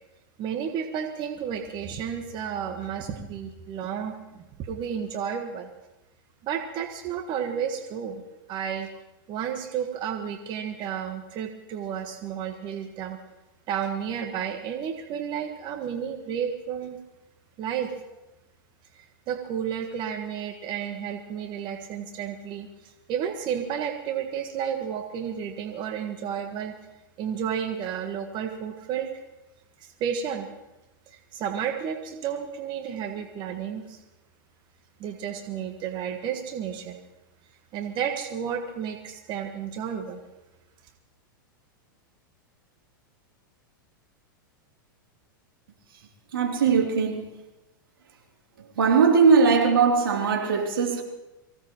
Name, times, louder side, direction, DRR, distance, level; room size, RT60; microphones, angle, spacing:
voice 1, 0.4-5.7 6.4-8.2 8.5-8.9 9.3-13.2 13.7-17.0 17.6-17.9 18.9-26.7 27.2-29.1 29.8-30.5 31.1-34.0 35.0-37.0 37.7-40.2, right 8 dB, 40° right, 1.4 m, -32 dB
voice 2, 46.3-47.3 48.7-51.0, right 5 dB, 85° right, 3.1 m, -20 dB
24.0 x 16.5 x 3.0 m
hypercardioid pair, 115°, 11 cm